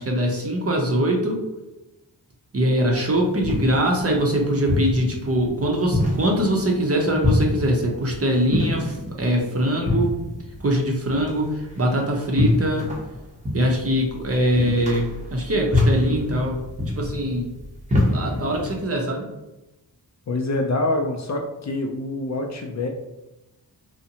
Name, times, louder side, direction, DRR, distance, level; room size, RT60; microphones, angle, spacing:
voice 1, 0.0-1.4 2.5-10.1 10.6-12.9 13.5-16.6 16.9-17.5 18.1-19.3, equal, 35° right, 0 dB, 0.6 m, -22 dB
sound 1, 2.9-18.8, left 1 dB, 15° right, 0.8 m, -26 dB
voice 2, 20.3-22.9, left 2 dB, 45° left, 2 dB, 0.4 m, -25 dB
2.6 x 2.1 x 2.7 m, 0.96 s
cardioid pair, 55°, 41 cm